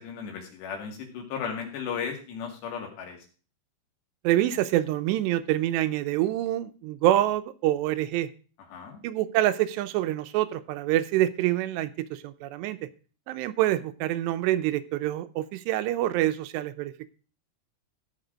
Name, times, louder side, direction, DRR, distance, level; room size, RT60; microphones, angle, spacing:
voice 1, 0.0-3.2 8.7-9.0, left 6 dB, 80° left, 2 dB, 4.5 m, -35 dB
voice 2, 4.2-8.3 9.0-12.8 13.3-17.1, right 14 dB, 85° right, 12 dB, 2.9 m, -26 dB
15.0 x 5.9 x 5.1 m, 0.37 s
omnidirectional pair, 4.9 m